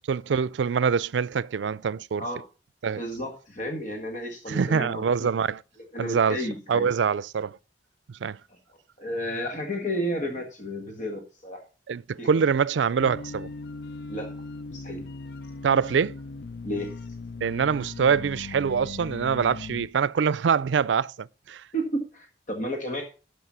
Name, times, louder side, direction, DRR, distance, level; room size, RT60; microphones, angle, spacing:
voice 1, 0.1-2.2 2.8-3.0 4.5-5.6 6.0-6.4 6.7-7.6 8.1-8.4 11.9-13.5 15.6-16.2 17.4-21.6, right 6 dB, 85° right, 0.4 m, -24 dB
voice 2, 3.0-5.3 5.9-6.9 9.0-11.6 12.2-12.3 14.1-14.3 14.7-15.0 16.6-16.9 21.7-23.0, equal, 45° left, 1.6 m, -32 dB
sound 1, 13.0-19.9, left 3 dB, 60° left, 0.5 m, -39 dB
12.5 x 5.4 x 5.6 m
head